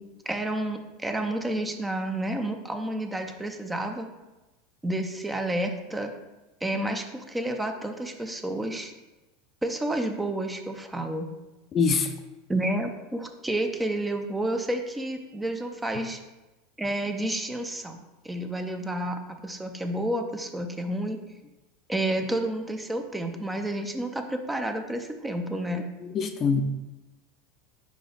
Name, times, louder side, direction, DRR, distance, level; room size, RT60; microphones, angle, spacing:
voice 1, 0.3-4.1 4.8-6.1 6.6-8.9 9.6-11.3 12.5-16.2 16.8-18.0 18.2-21.2 21.9-25.9, right 1 dB, 10° right, 5 dB, 0.6 m, -30 dB
voice 2, 11.7-12.1 26.0-26.6, left 5 dB, 40° left, 7 dB, 0.6 m, -24 dB
5.1 x 5.0 x 3.9 m, 1.1 s
hypercardioid pair, 95°, 0 cm